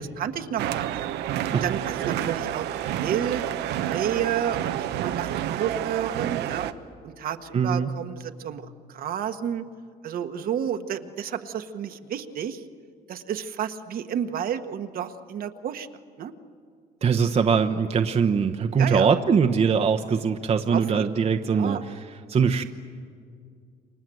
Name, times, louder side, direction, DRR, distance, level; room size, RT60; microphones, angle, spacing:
voice 1, 0.2-1.0 1.6-2.7 3.0-3.4 3.8-6.7 7.0-9.6 10.0-12.6 13.1-15.9 16.2-16.3 18.8-19.1 20.7-21.0 21.4-21.8, right 9 dB, 60° right, 7 dB, 1.4 m, -31 dB
sound 1, 0.6-6.7, right 11 dB, 80° right, 1.0 m, -29 dB
voice 2, 7.5-7.9 17.0-22.0 22.3-22.6, right 6 dB, 40° right, 6 dB, 1.1 m, -22 dB
29.0 x 25.0 x 7.9 m, 2.2 s
cardioid pair, 110°, 17 cm